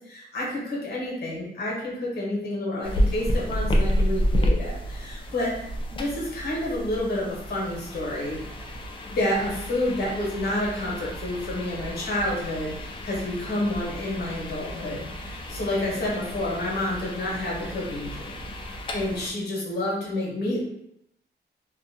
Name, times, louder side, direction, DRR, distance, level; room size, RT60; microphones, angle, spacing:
voice 1, 0.0-5.5 5.9-8.7 9.0-18.5 18.9-20.6, left 1 dB, 60° left, -4 dB, 1.0 m, -29 dB
sound 1, 2.8-19.3, equal, 25° left, 0.3 m, -30 dB
2.5 x 2.2 x 2.6 m, 0.76 s
cardioid pair, 120°, 19 cm